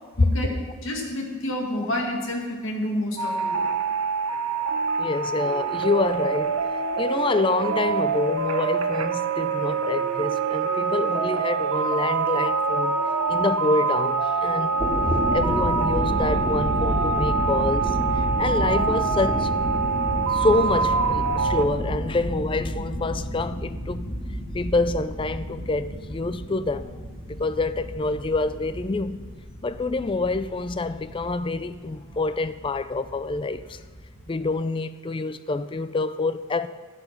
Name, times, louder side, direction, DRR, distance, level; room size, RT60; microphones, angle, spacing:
voice 1, 0.2-0.5 0.8-3.7, left 1 dB, 60° left, 2.1 m, -29 dB
sound 1, 3.2-21.7, right 4 dB, 85° right, 0.9 m, -25 dB
voice 2, 5.0-13.0 13.3-14.8 15.0-19.5 20.3-24.1 24.5-26.9 27.3-29.2 29.6-33.8 34.3-36.7, left 3 dB, 25° left, 0.3 m, -27 dB
sound 2, 14.6-34.3, equal, ahead, 2.6 m, -31 dB
11.5 x 9.1 x 5.8 m
head